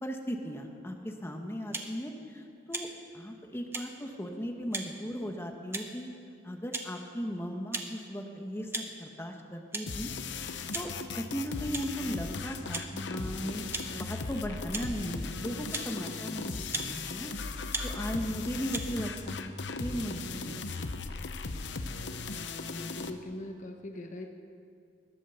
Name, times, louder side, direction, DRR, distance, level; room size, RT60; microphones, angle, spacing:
voice 1, 0.0-2.9 3.1-6.1 6.4-10.1 10.5-13.6 13.9-17.3 17.6-19.5 19.8-21.0, equal, 15° left, 3 dB, 1.1 m, -37 dB
sound 1, 1.7-1.9 2.7-2.9 3.7-3.9 4.7-4.9 5.7-6.0 6.7-6.9 7.7-7.9 8.7-8.9 9.7-9.8 10.7-10.9 11.7-11.9 12.7-12.9 13.7-13.9 14.7-14.9 15.7-15.9 16.7-16.9 17.7-17.9 18.7-18.8, right 3 dB, 15° right, 0.9 m, -35 dB
sound 2, 9.9-23.1, left 4 dB, 70° left, 0.8 m, -37 dB
voice 2, 22.7-24.3, left 1 dB, 45° left, 5 dB, 0.9 m, -41 dB
20.5 x 8.4 x 7.0 m, 2.4 s
head